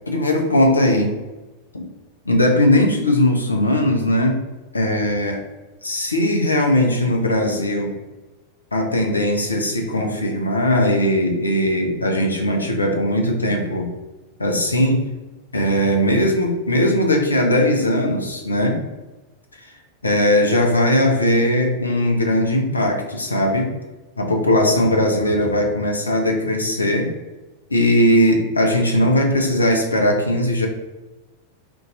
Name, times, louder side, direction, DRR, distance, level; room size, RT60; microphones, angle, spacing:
voice 1, 0.1-1.2 1.7-1.9 2.3-4.4 4.7-5.4 5.8-7.9 8.7-13.9 14.4-15.0 15.5-18.8 20.0-23.7 24.2-27.1 27.7-30.7, left 1 dB, 80° left, 2 dB, 0.5 m, -19 dB
2.6 x 2.3 x 4.0 m, 1.1 s
figure-of-eight pair, 90°, 0 cm